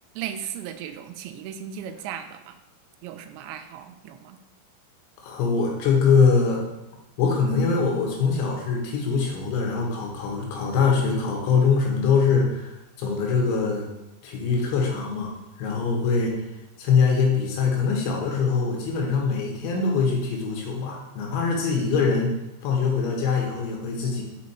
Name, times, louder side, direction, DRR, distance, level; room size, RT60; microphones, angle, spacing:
voice 1, 0.2-2.6 3.0-4.4, right 9 dB, 85° right, 8 dB, 2.7 m, -36 dB
voice 2, 5.2-6.6 7.2-13.9 14.2-16.5 16.8-22.3 22.6-24.2, left 5 dB, 90° left, 0 dB, 3.7 m, -23 dB
6.3 x 6.1 x 4.3 m, 0.93 s
omnidirectional pair, 5.1 m